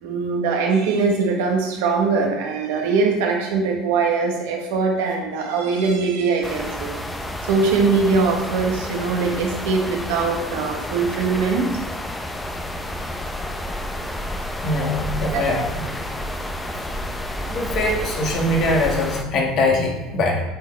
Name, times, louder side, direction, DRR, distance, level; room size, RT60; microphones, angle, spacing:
voice 1, 0.0-6.9 7.4-11.8 15.3-15.5, right 4 dB, 80° right, 1 dB, 1.2 m, -21 dB
sound 1, 6.4-19.2, left 1 dB, 10° left, 0.7 m, -30 dB
voice 2, 14.6-15.9 17.5-20.4, left 2 dB, 55° left, 0 dB, 1.7 m, -22 dB
8.5 x 3.8 x 3.3 m, 1.2 s
hypercardioid pair, 85°, 0 cm